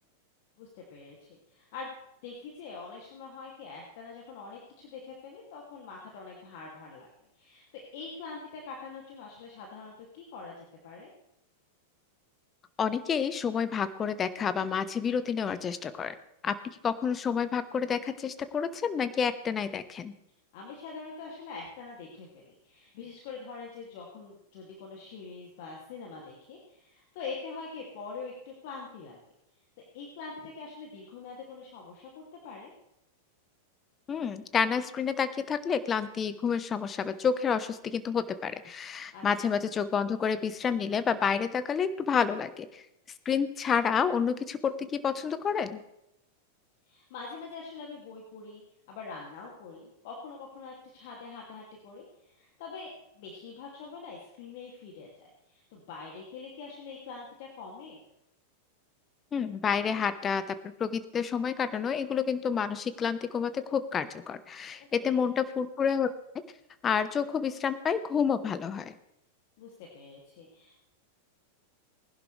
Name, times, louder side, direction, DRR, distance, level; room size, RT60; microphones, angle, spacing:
voice 1, 0.6-1.9 2.2-7.1 7.3-11.1 20.5-29.2 29.9-32.7 39.1-39.5 46.9-58.0 64.8-65.2 69.6-70.8, left 4 dB, 60° left, -1 dB, 2.6 m, -44 dB
voice 2, 12.8-16.1 16.4-16.6 16.8-20.1 34.1-42.8 43.2-45.8 59.3-60.4 60.8-66.1 66.8-68.9, left 6 dB, 25° left, 13 dB, 1.0 m, -29 dB
20.0 x 11.0 x 3.4 m, 0.82 s
hypercardioid pair, 95°, 0 cm